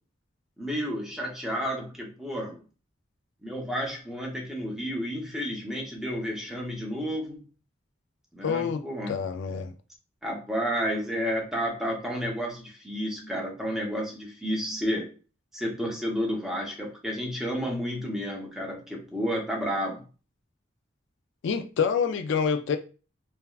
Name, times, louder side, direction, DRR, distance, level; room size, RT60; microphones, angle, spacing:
voice 1, 0.6-2.6 3.4-7.4 8.3-9.2 10.2-15.1 15.5-20.0, equal, 5° right, 0.7 m, -31 dB
voice 2, 8.4-9.7 21.4-22.8, left 6 dB, 65° left, 0.3 m, -27 dB
3.4 x 2.2 x 2.3 m
head